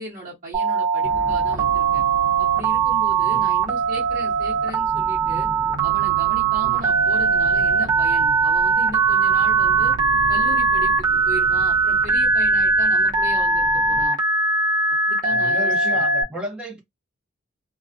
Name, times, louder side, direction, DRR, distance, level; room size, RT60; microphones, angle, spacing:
voice 1, 0.0-2.0 2.4-5.5 5.8-10.0 10.3-14.2 15.1-16.0, right 1 dB, 40° right, 1.1 m, -36 dB
Telephone, 0.5-16.2, right 4 dB, 20° right, 0.5 m, -20 dB
sound 1, 1.0-14.1, equal, 80° right, 0.7 m, -38 dB
voice 2, 3.2-3.5 6.6-6.8 15.3-16.8, equal, 5° right, 0.9 m, -33 dB
2.3 x 2.3 x 2.5 m
head